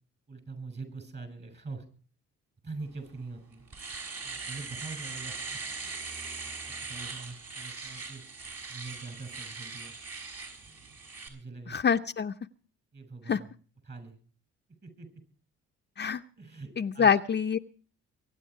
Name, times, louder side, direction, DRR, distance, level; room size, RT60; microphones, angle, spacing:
voice 1, 0.3-1.8 2.6-3.6 4.2-5.6 6.7-8.2 8.7-9.9 11.3-11.8 12.9-13.5 13.8-14.2 14.8-15.1 16.4-17.2, right 3 dB, 35° right, 10 dB, 6.7 m, -43 dB
Domestic sounds home sounds, 3.1-3.2 3.5-11.3, right 4 dB, 50° right, 6.1 m, -40 dB
voice 2, 11.7-12.3 13.3-13.4 16.0-16.2 16.8-17.6, left 7 dB, 35° left, 7 dB, 0.6 m, -25 dB
24.0 x 10.5 x 4.7 m, 0.41 s
cardioid pair, 90°, 30 cm